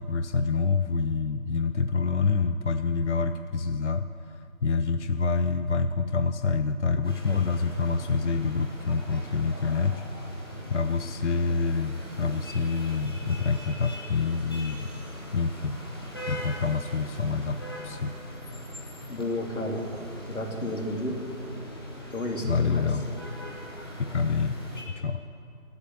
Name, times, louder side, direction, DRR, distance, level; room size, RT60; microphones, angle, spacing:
voice 1, 0.0-15.8 16.3-18.1 22.4-23.1 24.0-24.6 24.9-25.2, left 4 dB, 55° left, 10 dB, 0.6 m, -27 dB
sound 1, 7.0-24.8, left 1 dB, 15° left, 1.3 m, -40 dB
voice 2, 19.1-19.8 20.3-21.2 22.1-22.9, left 1 dB, 90° left, 1 dB, 3.3 m, -31 dB
15.5 x 8.2 x 9.9 m, 2.6 s
figure-of-eight pair, 175°, 42 cm